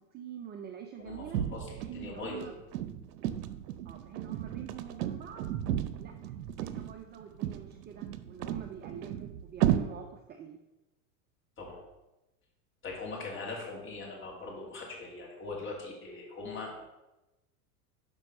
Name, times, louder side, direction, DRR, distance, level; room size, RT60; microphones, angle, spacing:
voice 1, 0.1-1.4 1.8-2.5 3.8-5.4 6.0-6.1 6.5-10.6, right 8 dB, 25° right, 4 dB, 0.5 m, -45 dB
voice 2, 1.0-2.4 11.6-11.8 12.8-16.8, left 3 dB, 25° left, -3 dB, 2.7 m, -41 dB
sound 1, 1.3-9.8, right 12 dB, 85° right, 0.7 m, -34 dB
6.3 x 5.2 x 5.3 m, 1.0 s
hypercardioid pair, 115°, 46 cm